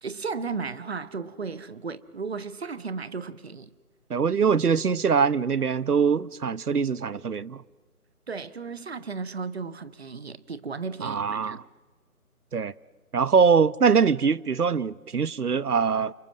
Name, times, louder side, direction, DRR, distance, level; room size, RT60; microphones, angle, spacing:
voice 1, 0.0-3.7 8.3-11.6, right 5 dB, 45° right, 1.3 m, -35 dB
voice 2, 4.1-7.6 11.0-11.6 12.5-12.7 13.1-16.1, right 6 dB, 80° right, 1.0 m, -23 dB
29.0 x 26.0 x 7.5 m
figure-of-eight pair, 160°, 45 cm